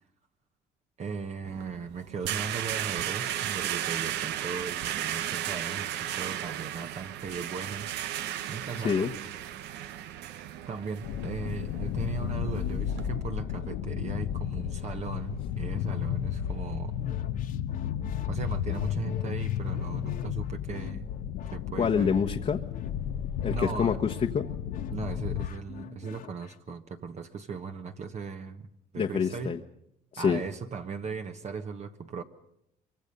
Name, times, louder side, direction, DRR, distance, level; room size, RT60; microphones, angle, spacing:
voice 1, 1.0-7.9 8.5-9.1 9.6-9.7 10.7-17.0 18.3-21.1 21.5-22.1 23.4-24.0 24.9-28.6 28.9-29.6 30.2-32.2, right 5 dB, 40° right, 6 dB, 1.3 m, -38 dB
sound 1, 1.5-13.1, right 11 dB, 85° right, 1.1 m, -35 dB
sound 2, 11.0-25.5, left 10 dB, 90° left, 1.1 m, -33 dB
sound 3, 17.0-26.7, left 8 dB, 55° left, 1.6 m, -47 dB
voice 2, 21.8-22.6 23.4-24.5 28.9-29.6 30.1-30.4, left 6 dB, 40° left, 3 dB, 1.2 m, -26 dB
24.0 x 23.5 x 5.4 m, 0.79 s
cardioid pair, 110°, 17 cm